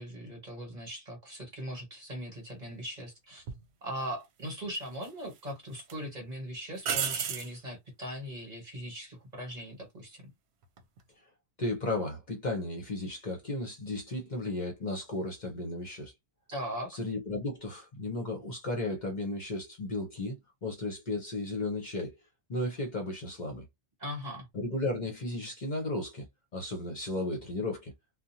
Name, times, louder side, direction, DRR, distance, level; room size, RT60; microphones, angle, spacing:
voice 1, 0.0-3.4 3.8-10.2 16.5-16.9 24.0-24.5, equal, 40° right, 1.3 m, -39 dB
sound 1, 3.5-3.6 4.7-5.4 5.8-5.9 6.8-7.5 10.6-11.0, right 7 dB, 75° right, 0.8 m, -33 dB
voice 2, 11.6-16.1 16.9-22.1 22.5-23.6 24.5-26.2 26.5-27.9, left 2 dB, 45° left, 0.8 m, -34 dB
2.5 x 2.2 x 2.7 m
omnidirectional pair, 1.1 m